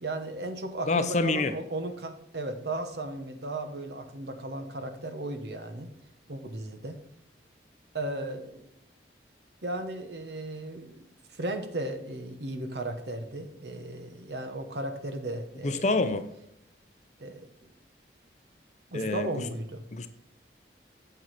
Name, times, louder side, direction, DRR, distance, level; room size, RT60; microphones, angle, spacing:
voice 1, 0.0-5.9 6.3-7.0 7.9-8.7 9.6-15.8 17.2-17.4 18.9-19.8, right 2 dB, 70° right, 7 dB, 1.1 m, -35 dB
voice 2, 0.9-1.5 15.6-16.3 18.9-19.5 19.9-20.1, left 3 dB, 40° left, 9 dB, 0.7 m, -27 dB
7.8 x 7.3 x 4.2 m, 0.75 s
head